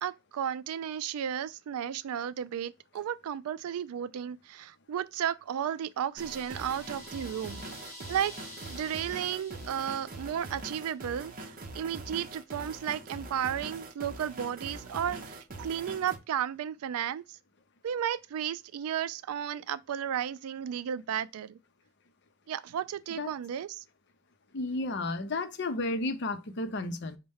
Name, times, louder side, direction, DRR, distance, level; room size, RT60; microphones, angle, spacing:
voice 1, 0.0-7.6 8.1-8.4 8.7-17.4 17.8-21.6 22.5-23.8, right 9 dB, 85° right, 0.3 m, -34 dB
sound 1, 6.2-11.0, left 1 dB, 15° left, 2.1 m, -49 dB
sound 2, 6.2-16.2, right 2 dB, 40° right, 0.6 m, -43 dB
voice 2, 24.5-27.2, left 2 dB, 55° left, 0.6 m, -32 dB
5.2 x 2.1 x 3.5 m
head